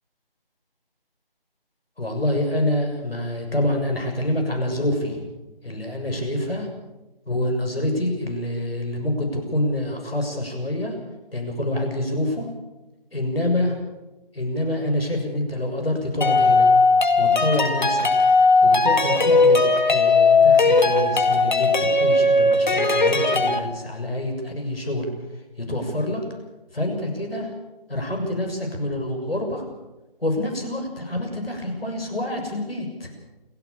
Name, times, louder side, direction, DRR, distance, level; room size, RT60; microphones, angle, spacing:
voice 1, 2.0-5.3 5.6-6.7 7.3-10.9 11.3-12.5 13.1-13.7 14.3-16.7 17.2-18.1 18.6-25.1 25.6-26.2 26.7-27.5 27.9-29.6 30.2-33.1, left 1 dB, 80° left, 3 dB, 7.2 m, -26 dB
sound 1, 16.2-23.6, left 3 dB, 50° left, 2.1 m, -17 dB
29.0 x 11.5 x 8.7 m, 1.0 s
figure-of-eight pair, 165°, 29 cm